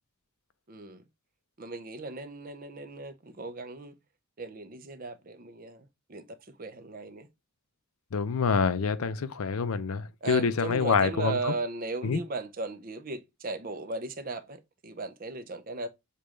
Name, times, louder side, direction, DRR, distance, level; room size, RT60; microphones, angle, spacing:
voice 1, 0.7-1.0 1.6-3.9 4.4-7.3 10.2-15.9, right 3 dB, 40° right, 0.6 m, -37 dB
voice 2, 8.1-11.4 12.0-12.2, left 5 dB, 75° left, 0.5 m, -26 dB
6.7 x 2.4 x 3.0 m
head